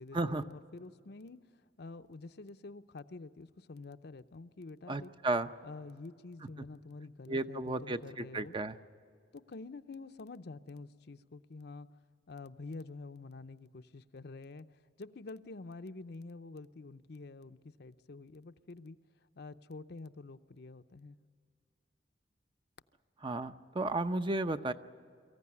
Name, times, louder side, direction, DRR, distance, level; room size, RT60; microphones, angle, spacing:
voice 1, 0.0-1.4 1.8-5.1 5.6-8.5 9.3-11.9 12.3-19.0 19.3-21.2, left 3 dB, 65° left, 10 dB, 0.7 m, -48 dB
voice 2, 4.9-5.5 7.3-8.8 23.2-24.7, right 2 dB, 30° right, 10 dB, 0.7 m, -33 dB
23.5 x 15.0 x 9.7 m, 2.2 s
head